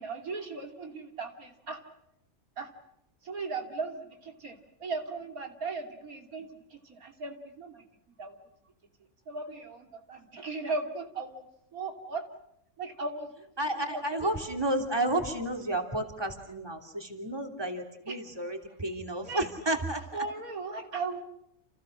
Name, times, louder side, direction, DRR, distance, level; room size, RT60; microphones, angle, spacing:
voice 1, 0.0-1.8 2.6-2.7 3.2-7.8 8.2-8.4 9.3-11.5 11.7-12.2 12.8-13.4 13.8-14.3 18.1-18.5 19.2-19.5 20.1-21.2, right 3 dB, 80° right, 4 dB, 3.2 m, -37 dB
voice 2, 13.6-20.0, right 1 dB, 15° right, 4 dB, 3.2 m, -31 dB
30.0 x 29.0 x 6.5 m, 0.80 s
omnidirectional pair, 1.5 m